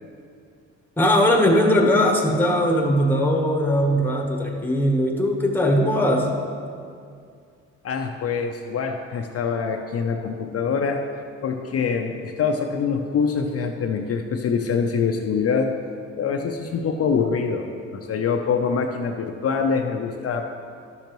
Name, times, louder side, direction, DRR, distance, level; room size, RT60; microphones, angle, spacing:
voice 1, 1.0-6.3, equal, 5° left, 1 dB, 1.1 m, -20 dB
voice 2, 7.8-11.0 11.4-15.7 16.2-20.5, left 5 dB, 50° left, 3 dB, 0.6 m, -24 dB
11.5 x 6.7 x 3.0 m, 2.3 s
cardioid pair, 90°, 30 cm